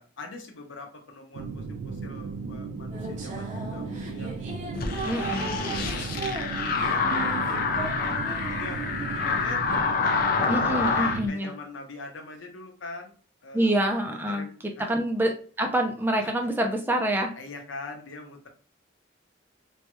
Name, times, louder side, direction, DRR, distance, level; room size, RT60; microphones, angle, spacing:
voice 1, 0.0-4.4 5.0-7.0 7.9-10.3 10.8-13.1 13.4-13.8 14.1-15.0 16.2-16.3 17.4-18.5, left 3 dB, 75° left, 3 dB, 0.7 m, -42 dB
sound 1, 1.3-11.3, right 4 dB, 85° right, 0.3 m, -36 dB
sound 2, 2.9-10.3, right 2 dB, 40° right, 0.7 m, -37 dB
sound 3, 4.7-11.2, left 5 dB, 50° left, 0.4 m, -27 dB
voice 2, 5.0-5.6 10.5-11.5 13.5-14.5 14.9-17.3, right 1 dB, 10° right, 3 dB, 0.4 m, -26 dB
3.1 x 2.2 x 2.9 m, 0.42 s
head